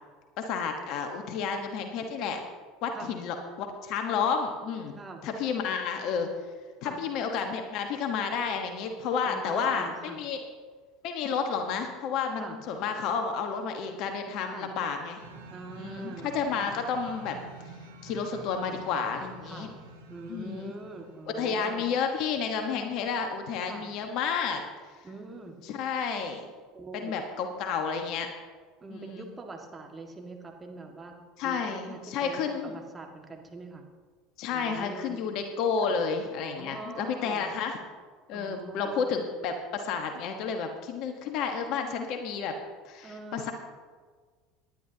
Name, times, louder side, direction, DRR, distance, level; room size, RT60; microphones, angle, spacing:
voice 1, 0.4-2.4 2.8-5.0 5.2-6.3 6.8-10.4 11.0-15.2 15.8-17.4 18.0-19.7 20.3-20.7 21.4-24.6 25.7-26.4 26.9-28.3 28.9-29.3 31.4-32.7 34.4-37.8 38.3-42.5 42.8-43.5, left 6 dB, 60° left, 5 dB, 1.2 m, -31 dB
voice 2, 9.2-10.2 12.4-12.6 14.4-14.7 15.5-16.4 19.4-19.7 20.1-21.9 23.6-23.9 25.0-25.6 26.7-27.3 28.8-31.2 31.4-33.9 34.5-35.2 35.9-36.0 36.6-37.5 38.3-39.0 43.0-43.5, right 3 dB, 25° right, 3 dB, 1.8 m, -43 dB
sound 1, 15.2-21.4, right 3 dB, 90° right, 1.8 m, -48 dB
18.5 x 10.5 x 2.9 m, 1.5 s
hypercardioid pair, 85°, 0 cm